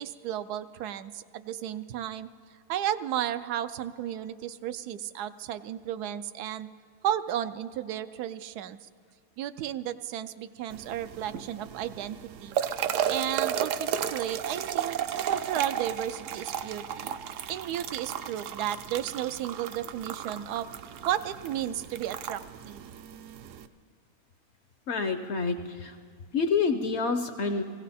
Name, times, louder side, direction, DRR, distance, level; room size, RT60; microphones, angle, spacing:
voice 1, 0.0-2.3 2.7-6.7 7.0-8.8 9.4-12.5 13.1-15.0 15.2-17.1 17.5-20.7 21.0-22.8, right 11 dB, 85° right, 12 dB, 1.1 m, -33 dB
sound 1, 10.7-23.7, right 9 dB, 65° right, 0.8 m, -34 dB
voice 2, 24.9-26.0 26.3-27.6, left 4 dB, 60° left, 8 dB, 0.8 m, -28 dB
17.5 x 16.5 x 4.2 m, 2.1 s
omnidirectional pair, 1.6 m